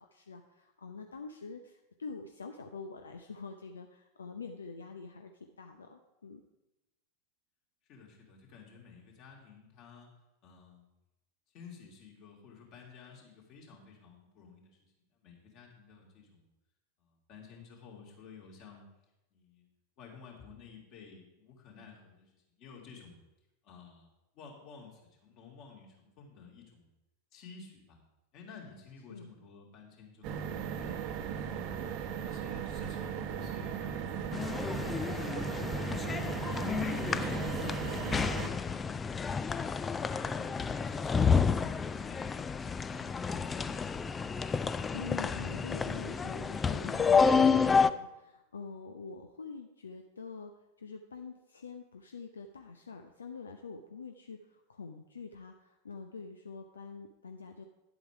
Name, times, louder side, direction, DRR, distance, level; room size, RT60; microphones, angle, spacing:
voice 1, 0.0-6.4 29.1-29.3 44.9-57.6, left 4 dB, 70° left, 5 dB, 0.7 m, -46 dB
voice 2, 7.9-10.1 10.4-10.9 11.5-16.5 17.0-18.9 19.3-19.7 20.0-23.2 23.6-24.1 24.3-27.0 27.3-28.0 28.3-31.0 31.4-31.8 32.2-39.8 40.1-42.3 42.8-43.9, left 5 dB, 40° left, -1 dB, 2.8 m, -53 dB
sound 1, 30.2-38.5, right 7 dB, 40° right, 0.9 m, -37 dB
sound 2, 34.3-47.9, left 5 dB, 15° left, 0.4 m, -30 dB
11.0 x 7.9 x 4.7 m, 0.95 s
figure-of-eight pair, 90°, 0 cm